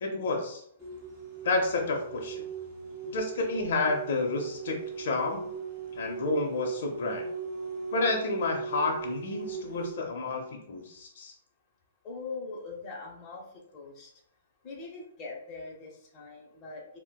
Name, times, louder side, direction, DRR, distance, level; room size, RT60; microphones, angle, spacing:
voice 1, 0.0-0.6 1.4-2.4 3.1-5.4 6.0-7.2 7.9-11.3, left 3 dB, 65° left, 1 dB, 0.5 m, -30 dB
sound 1, 0.8-9.9, right 5 dB, 10° right, 1.3 m, -39 dB
voice 2, 12.0-13.4 13.7-14.1 14.6-17.0, left 4 dB, 25° left, -1 dB, 0.8 m, -42 dB
4.0 x 2.1 x 2.2 m, 0.69 s
hypercardioid pair, 150°, 0 cm